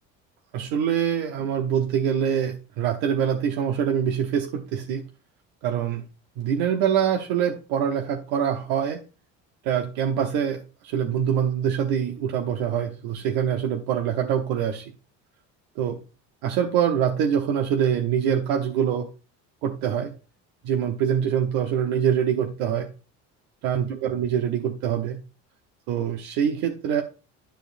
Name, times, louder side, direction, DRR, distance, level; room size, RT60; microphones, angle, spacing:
voice 1, 0.5-5.0 5.6-6.0 6.4-9.0 9.6-14.8 15.8-16.0 16.4-19.1 19.6-20.1 20.6-22.9 23.6-25.2 25.9-27.0, right 8 dB, 75° right, 3 dB, 1.0 m, -24 dB
11.5 x 4.9 x 2.6 m, 0.33 s
supercardioid pair, 90°, 37 cm